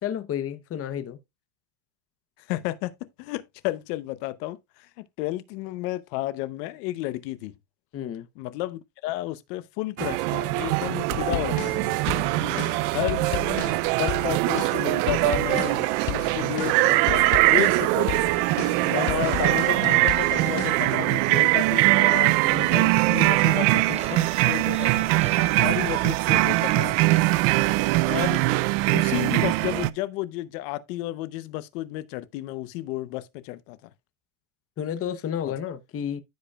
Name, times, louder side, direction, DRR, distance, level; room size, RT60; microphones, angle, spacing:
voice 1, 0.0-1.2 7.9-8.3 12.4-12.7 34.8-36.2, left 9 dB, 30° left, 0.8 m, -31 dB
voice 2, 2.5-7.5 8.4-12.0 12.9-18.4 18.8-25.1 25.6-27.0 28.0-28.4 28.9-33.8 35.5-35.6, left 16 dB, 80° left, 0.9 m, -32 dB
sound 1, 10.0-29.9, right 21 dB, 75° right, 0.6 m, -22 dB
sound 2, 11.1-20.7, left 16 dB, 50° left, 0.5 m, -34 dB
sound 3, 23.1-28.5, right 5 dB, 15° right, 0.7 m, -43 dB
14.5 x 5.0 x 2.3 m
supercardioid pair, 125°, 48 cm